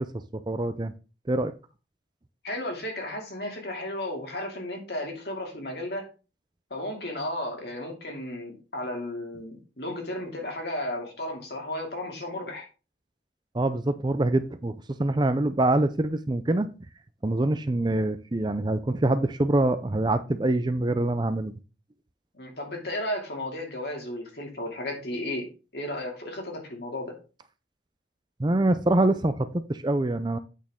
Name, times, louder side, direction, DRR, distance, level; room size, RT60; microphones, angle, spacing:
voice 1, 0.5-0.9 1.3-1.5 13.5-16.7 17.2-21.5 28.4-30.4, right 2 dB, 25° right, 0.5 m, -25 dB
voice 2, 2.4-6.1 6.7-12.7 22.3-25.5 25.7-27.2, left 1 dB, 60° left, 2.6 m, -34 dB
8.3 x 6.4 x 3.7 m
head